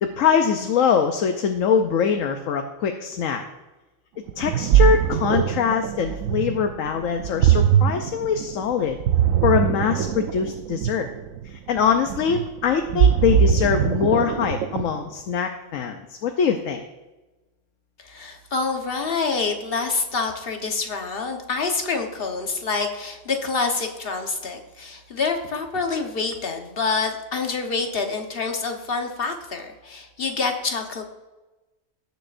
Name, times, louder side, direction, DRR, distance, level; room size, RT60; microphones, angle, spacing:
voice 1, 0.0-3.4 4.4-9.0 9.4-11.1 11.5-16.8, left 7 dB, 90° left, 5 dB, 1.1 m, -23 dB
Ocean, 4.3-15.1, right 9 dB, 85° right, 1.0 m, -21 dB
voice 2, 18.0-31.0, left 4 dB, 50° left, 4 dB, 1.3 m, -27 dB
17.0 x 7.1 x 2.5 m, 1.1 s
omnidirectional pair, 1.3 m